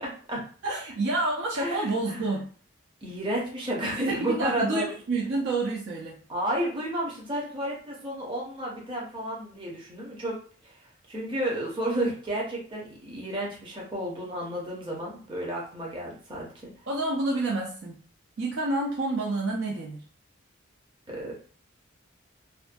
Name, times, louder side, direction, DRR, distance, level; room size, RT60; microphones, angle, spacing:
voice 1, 0.0-0.5 1.5-2.2 3.0-4.9 6.3-10.3 10.6-10.8 11.1-16.7 21.1-21.3, right 1 dB, 25° right, -4 dB, 0.7 m, -32 dB
voice 2, 0.6-2.4 4.1-6.2 16.9-18.0 18.4-20.0, right 2 dB, 65° right, -3 dB, 0.4 m, -28 dB
2.5 x 2.2 x 2.5 m, 0.43 s
head